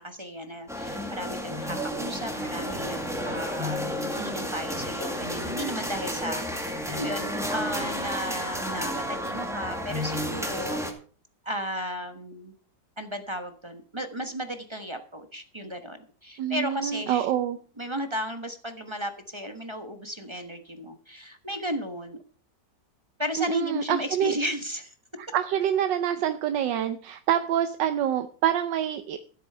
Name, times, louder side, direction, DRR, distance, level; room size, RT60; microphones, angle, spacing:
voice 1, 0.0-10.8 11.4-12.5 13.0-17.3 17.8-22.2 23.2-24.9, equal, 20° right, 7 dB, 1.0 m, -34 dB
sound 1, 0.7-10.9, equal, ahead, 1.9 m, -31 dB
voice 2, 16.4-17.6 23.4-24.3 25.2-29.2, right 10 dB, 85° right, 9 dB, 1.4 m, -26 dB
13.5 x 8.3 x 5.6 m, 0.42 s
omnidirectional pair, 1.9 m